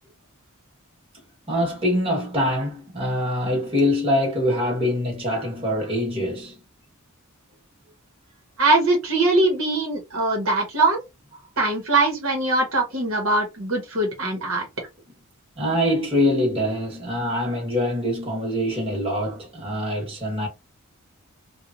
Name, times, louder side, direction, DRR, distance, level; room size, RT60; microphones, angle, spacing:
voice 1, 1.5-6.6 15.6-20.5, left 1 dB, 25° right, 1.2 m, -24 dB
voice 2, 8.6-11.0 11.6-14.7, right 2 dB, 65° right, 1.1 m, -21 dB
2.9 x 2.3 x 2.5 m
head